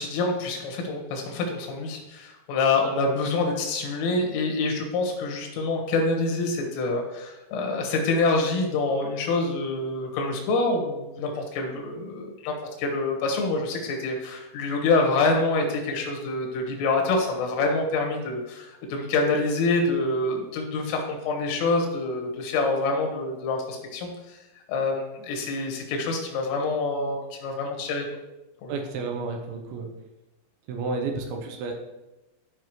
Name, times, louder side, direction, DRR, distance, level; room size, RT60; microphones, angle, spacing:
voice 1, 0.0-24.1 24.7-28.1 28.6-28.7, left 3 dB, 85° left, 1 dB, 4.0 m, -26 dB
voice 2, 28.7-29.9 30.7-31.7, right 4 dB, 80° right, 3 dB, 3.1 m, -31 dB
13.0 x 5.5 x 3.1 m, 1.0 s
omnidirectional pair, 5.5 m